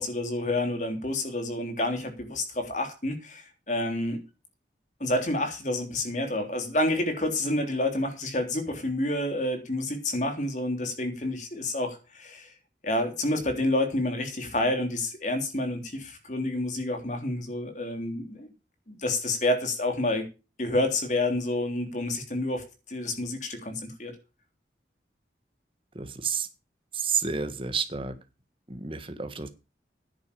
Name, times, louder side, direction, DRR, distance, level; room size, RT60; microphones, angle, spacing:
voice 1, 0.0-4.2 5.0-12.5 12.8-18.5 18.9-20.3 20.6-24.2, left 1 dB, 45° left, 5 dB, 3.4 m, -29 dB
voice 2, 25.9-26.5 27.0-28.1 28.7-29.5, right 6 dB, 30° right, 9 dB, 1.6 m, -30 dB
10.5 x 8.4 x 7.0 m, 0.30 s
head